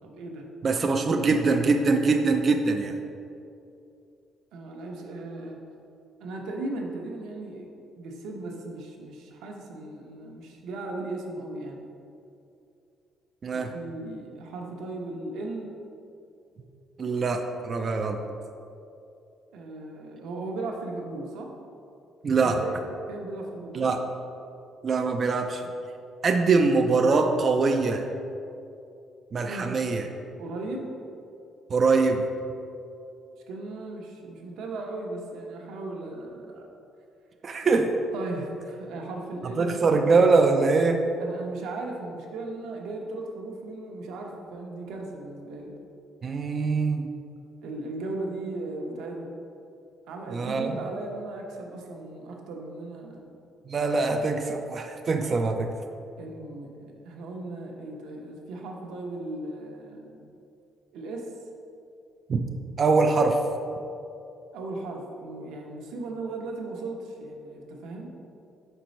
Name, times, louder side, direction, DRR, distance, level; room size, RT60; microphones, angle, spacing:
voice 1, 0.0-0.5 4.5-5.7 6.2-7.7 8.0-11.9 13.5-15.7 19.5-21.5 22.4-22.8 23.1-24.0 29.5-29.7 30.4-30.9 33.5-36.7 38.1-39.9 41.2-45.7 47.6-49.4 50.1-53.3 56.2-60.3 60.9-61.3 64.5-68.1, right 2 dB, 85° right, 1 dB, 0.9 m, -37 dB
voice 2, 0.6-3.0 13.4-13.7 17.0-18.2 22.2-22.6 23.7-24.0 24.8-25.6 26.2-28.1 29.3-30.1 31.7-32.3 37.4-37.9 39.6-41.0 46.2-47.1 50.3-50.7 53.7-55.7 62.3-62.4 62.8-63.4, right 4 dB, 30° right, 5 dB, 0.3 m, -23 dB
5.0 x 4.5 x 5.3 m, 2.7 s
cardioid pair, 165°, 0 cm